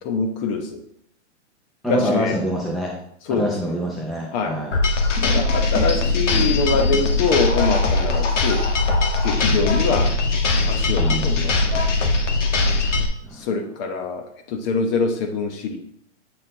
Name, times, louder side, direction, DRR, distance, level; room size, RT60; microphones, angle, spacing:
voice 1, 0.0-0.8 1.8-2.4 3.2-3.7 4.3-4.6 5.2-8.6 9.2-10.1 10.7-11.9 13.3-15.8, left 4 dB, 35° left, 6 dB, 1.0 m, -24 dB
voice 2, 1.8-2.9 3.3-4.7 9.5-9.6 11.0-11.4 13.2-13.4, equal, ahead, -3 dB, 0.5 m, -26 dB
sound 1, 4.7-13.1, left 3 dB, 85° left, 1.3 m, -20 dB
7.7 x 4.2 x 3.9 m, 0.69 s
hypercardioid pair, 140°, 36 cm